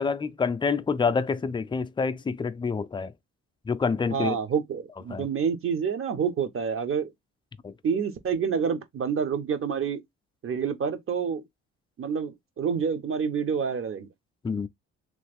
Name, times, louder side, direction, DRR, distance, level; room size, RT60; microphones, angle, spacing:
voice 1, 0.0-3.1 3.7-4.4 5.1-5.3 7.6-7.7 14.4-14.7, left 5 dB, 15° left, 0.4 m, -27 dB
voice 2, 4.1-7.1 7.8-10.0 10.4-11.4 12.0-14.1, right 6 dB, 45° right, 0.9 m, -28 dB
3.1 x 2.4 x 3.4 m
cardioid pair, 90°, 30 cm